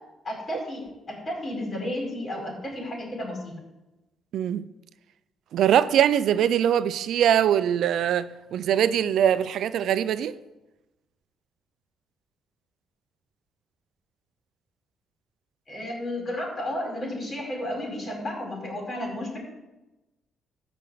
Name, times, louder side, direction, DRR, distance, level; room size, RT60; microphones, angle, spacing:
voice 1, 0.2-3.6 15.7-19.4, left 1 dB, 35° left, 5.2 m, -32 dB
voice 2, 4.3-4.6 5.5-10.4, right 9 dB, 75° right, 0.5 m, -22 dB
13.5 x 5.1 x 8.6 m
cardioid pair, 90°, 0 cm